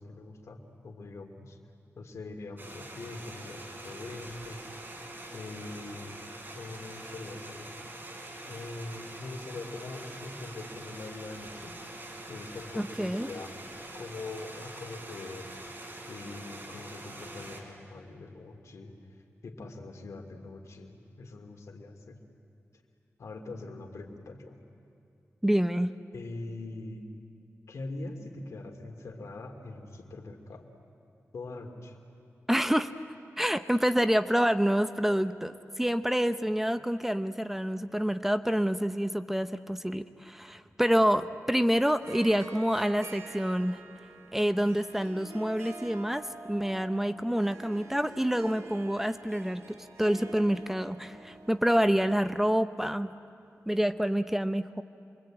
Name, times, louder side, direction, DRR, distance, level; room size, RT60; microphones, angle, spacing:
voice 1, 0.0-1.6 2.0-4.7 5.3-6.1 6.5-7.7 8.4-11.8 12.3-13.5 13.9-15.5 16.1-18.9 19.4-22.2 23.2-24.6 26.1-27.1 27.7-30.7 31.3-32.0, left 2 dB, 85° left, 3 dB, 2.6 m, -42 dB
sound 1, 2.6-17.6, right 1 dB, 45° right, 3.8 m, -44 dB
voice 2, 12.8-13.3 25.4-25.9 32.5-32.9 33.4-43.8 44.3-53.1 53.7-54.8, equal, 5° right, 10 dB, 0.7 m, -27 dB
Harp, 41.9-52.2, right 2 dB, 70° right, 2.6 m, -48 dB
27.5 x 23.5 x 8.9 m, 2.5 s
wide cardioid pair, 100°, 5 cm